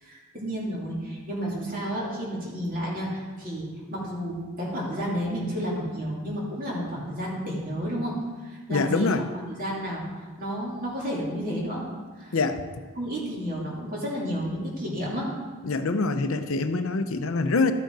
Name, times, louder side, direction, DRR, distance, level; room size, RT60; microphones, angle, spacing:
voice 1, 0.0-8.1 8.4-11.8 12.2-12.4 12.9-15.3, equal, 40° right, -5 dB, 2.9 m, -31 dB
voice 2, 8.7-9.2 12.3-12.6 15.6-17.7, left 3 dB, 65° left, 9 dB, 0.7 m, -25 dB
13.0 x 6.6 x 4.8 m, 1.4 s
head